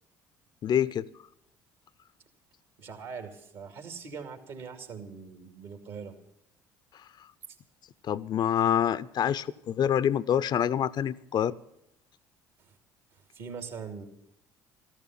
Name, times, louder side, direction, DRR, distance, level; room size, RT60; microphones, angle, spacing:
voice 1, 0.6-1.1 8.0-11.5, left 9 dB, 50° left, 18 dB, 0.5 m, -26 dB
voice 2, 2.8-6.1 12.6-12.8 13.1-14.1, right 5 dB, 65° right, 6 dB, 2.5 m, -42 dB
14.5 x 13.5 x 5.9 m, 0.81 s
hypercardioid pair, 60°, 10 cm